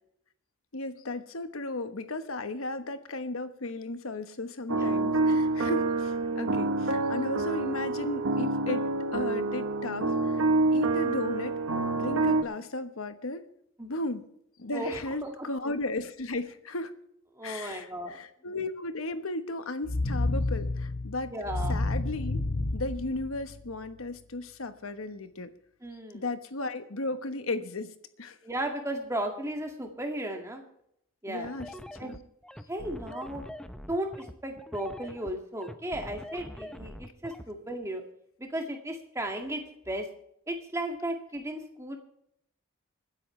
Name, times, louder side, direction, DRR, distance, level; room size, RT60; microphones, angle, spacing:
voice 1, 0.7-10.4 10.7-11.6 11.9-13.4 13.9-14.2 14.6-16.9 17.4-21.3 21.7-22.4 22.7-25.5 26.1-28.4 31.3-31.7 32.0-32.2, left 2 dB, 85° left, 10 dB, 1.2 m, -35 dB
sound 1, 4.7-12.4, right 2 dB, 85° right, 1.1 m, -27 dB
voice 2, 14.7-15.5 17.4-18.2 21.3-21.7 25.8-26.2 28.4-30.6 31.2-31.5 32.0-32.2 32.7-33.5 33.9-38.0 38.4-40.1 40.5-42.0, right 1 dB, 15° right, 3 dB, 2.0 m, -35 dB
sound 2, 19.9-23.9, left 2 dB, 40° left, 0.8 m, -30 dB
sound 3, 31.4-37.5, left 1 dB, 5° left, 0.6 m, -43 dB
26.0 x 10.0 x 3.2 m, 0.75 s
head